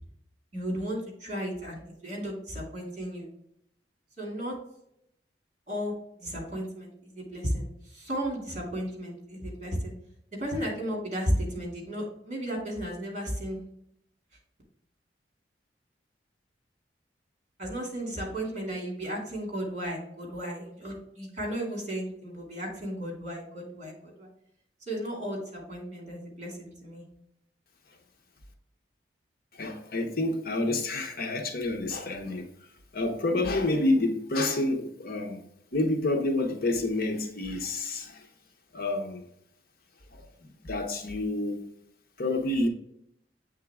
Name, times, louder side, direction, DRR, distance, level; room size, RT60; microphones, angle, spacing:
voice 1, 0.5-3.3 4.2-4.6 5.7-5.9 6.2-9.9 10.3-13.6 17.6-24.3 24.9-27.0, equal, 40° right, 2.6 m, -34 dB
voice 2, 29.5-32.5 32.9-35.4 35.7-38.3 38.7-39.2 40.1-41.7 42.2-42.7, left 2 dB, 55° left, 0.9 m, -29 dB
8.0 x 3.7 x 3.5 m
head